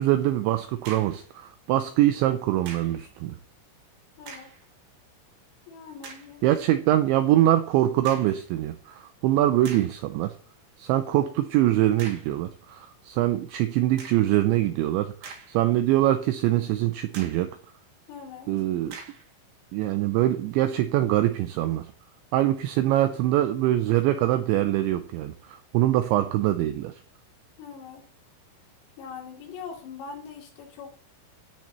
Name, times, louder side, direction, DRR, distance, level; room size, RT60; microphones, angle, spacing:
voice 1, 0.0-3.4 6.4-10.3 10.8-17.5 18.5-19.0 19.7-21.9 22.3-26.9, right 14 dB, 85° right, 9 dB, 2.6 m, -23 dB
sound 1, 0.8-1.3 2.7-3.0 4.2-4.6 5.2-5.3 6.0-6.3 8.0-8.4 9.1-9.2 9.6-10.0 12.0-12.4 14.0-14.3 15.0-15.8 16.2-16.3 17.1-17.5 18.9-19.3, right 5 dB, 50° right, 3.7 m, -43 dB
voice 2, 4.2-4.5 5.7-6.5 6.8-6.9 18.1-18.5 27.6-28.0 29.0-30.9, left 6 dB, 85° left, -1 dB, 5.8 m, -42 dB
13.5 x 10.5 x 3.1 m, 0.43 s
omnidirectional pair, 6.0 m